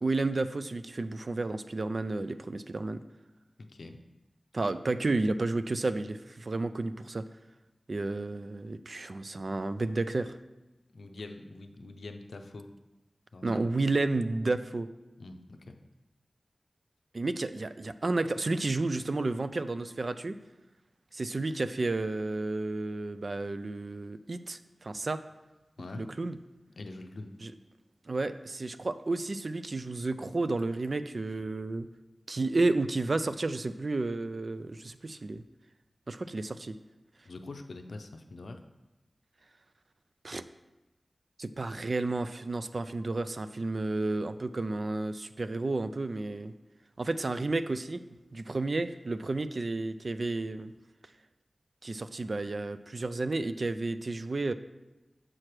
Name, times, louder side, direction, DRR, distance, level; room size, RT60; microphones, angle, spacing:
voice 1, 0.0-3.0 4.5-7.3 7.9-10.4 13.4-14.9 17.1-20.3 21.1-25.2 25.9-26.4 27.4-27.5 28.1-31.9 32.3-35.4 36.1-36.8 40.2-40.4 41.4-46.5 47.0-48.0 48.3-50.7 51.8-54.5, right 2 dB, 55° right, 11 dB, 0.3 m, -31 dB
voice 2, 3.6-4.0 10.9-12.7 13.3-13.7 15.2-15.8 25.8-26.1 26.8-27.3 37.2-38.6, left 2 dB, 90° left, 6 dB, 0.5 m, -44 dB
7.5 x 5.9 x 3.2 m, 1.0 s
wide cardioid pair, 85°, 0 cm